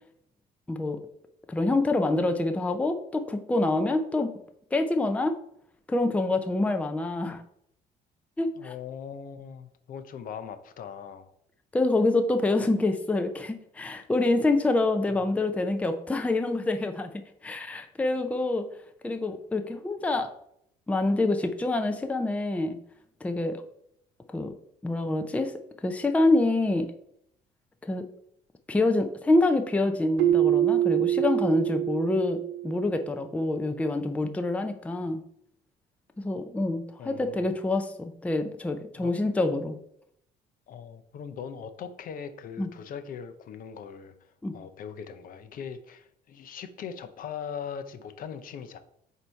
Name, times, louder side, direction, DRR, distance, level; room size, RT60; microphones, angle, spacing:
voice 1, 0.7-1.0 1.5-4.3 4.7-5.4 5.9-7.4 8.4-8.7 11.7-17.1 17.4-18.7 19.0-20.3 20.9-22.8 23.2-23.6 24.3-24.5 24.8-25.5 25.8-26.9 27.8-28.0 28.7-35.2 36.2-39.8 42.6-42.7 44.4-44.5, left 2 dB, 10° left, 6 dB, 0.5 m, -26 dB
voice 2, 8.6-11.3 37.0-37.5 39.0-39.2 40.7-48.8, left 7 dB, 55° left, 9 dB, 0.6 m, -40 dB
Keyboard (musical), 30.2-33.0, right 12 dB, 75° right, 0.5 m, -25 dB
8.0 x 2.7 x 4.4 m, 0.72 s
cardioid pair, 110°, 17 cm